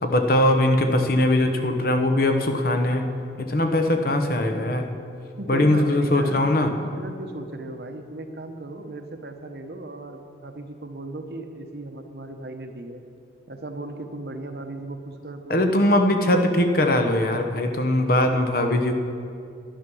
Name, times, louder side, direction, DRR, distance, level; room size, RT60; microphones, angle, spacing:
voice 1, 0.0-3.1 3.4-4.9 5.5-6.7 15.5-18.9, left 1 dB, 50° left, 5 dB, 0.9 m, -21 dB
voice 2, 5.4-13.0 13.5-15.6, right 2 dB, 55° right, 6 dB, 0.9 m, -36 dB
11.0 x 10.5 x 6.2 m, 2.5 s
head